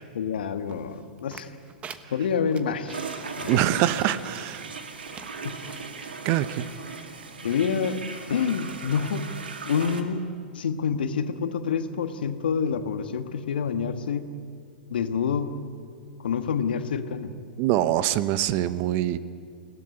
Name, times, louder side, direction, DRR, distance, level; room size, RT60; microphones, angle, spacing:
voice 1, 0.1-1.5 2.1-3.0 3.4-3.6 5.4-5.6 7.4-8.0 8.3-9.3 9.7-10.3 10.5-14.3 14.9-15.5 16.2-17.3, left 6 dB, 70° left, 8 dB, 1.5 m, -27 dB
sound 1, 0.7-4.4 4.8-4.9 5.1-5.9 6.5-6.6, right 7 dB, 25° right, 1.2 m, -45 dB
sound 2, 2.9-10.0, right 4 dB, 80° right, 2.2 m, -38 dB
voice 2, 3.5-4.7 6.2-6.7 17.6-19.2, right 13 dB, 45° right, 14 dB, 1.0 m, -24 dB
21.5 x 17.5 x 9.8 m, 2.2 s
hypercardioid pair, 110°, 5 cm